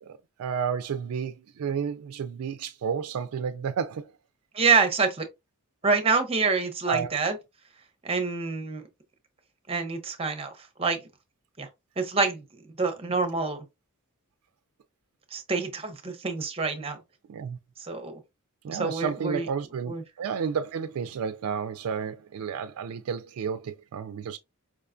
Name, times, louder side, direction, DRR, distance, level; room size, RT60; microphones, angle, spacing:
voice 1, 0.0-4.1 6.9-7.2 17.3-17.6 18.6-24.4, right 6 dB, 65° right, 0.3 m, -31 dB
voice 2, 4.5-5.3 5.8-7.3 8.0-8.8 9.7-10.5 10.8-11.0 11.6-11.7 12.0-12.4 12.8-13.6 15.3-17.0 17.8-18.2 18.7-19.5 19.9-20.0, right 4 dB, 25° right, 0.7 m, -26 dB
4.8 x 2.2 x 2.4 m
head